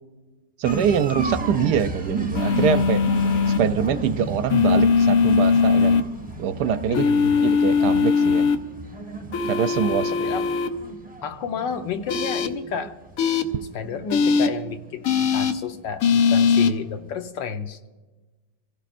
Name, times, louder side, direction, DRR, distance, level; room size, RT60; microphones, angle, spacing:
sound 1, 0.6-16.2 16.4-17.3, right 3 dB, 5° right, 0.7 m, -34 dB
voice 1, 0.6-3.0 3.6-6.0 6.4-7.0 7.4-8.5 9.5-10.1, right 8 dB, 70° right, 1.1 m, -24 dB
sound 2, 2.3-3.6 4.5-6.0 6.9-8.6 9.3-10.7 12.1-12.5 13.2-13.4 14.1-14.5 15.0-15.5 16.0-16.7, left 5 dB, 60° left, 1.1 m, -20 dB
voice 2, 6.9-7.4 10.1-10.5 11.2-13.0 13.7-17.9, left 6 dB, 75° left, 1.6 m, -31 dB
26.5 x 16.5 x 2.5 m
omnidirectional pair, 2.0 m